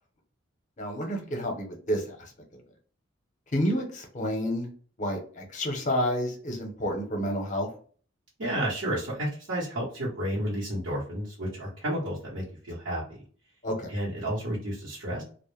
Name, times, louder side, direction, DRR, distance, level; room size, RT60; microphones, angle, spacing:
voice 1, 0.8-2.6 3.5-4.7 5.0-7.7 13.6-13.9, equal, 40° left, 2 dB, 0.7 m, -30 dB
voice 2, 8.4-13.2 13.9-15.2, right 1 dB, 70° right, -7 dB, 0.9 m, -31 dB
2.1 x 2.1 x 3.1 m, 0.43 s
head